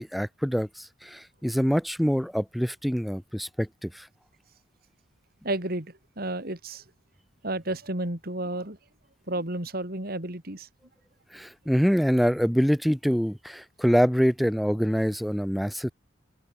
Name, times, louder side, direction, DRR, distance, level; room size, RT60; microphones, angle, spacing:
voice 1, 0.0-4.1 11.3-15.9, equal, ahead, 6.1 m, -25 dB
voice 2, 5.4-6.8 7.4-8.8 9.3-10.7, right 1 dB, 50° right, 3.2 m, -32 dB
head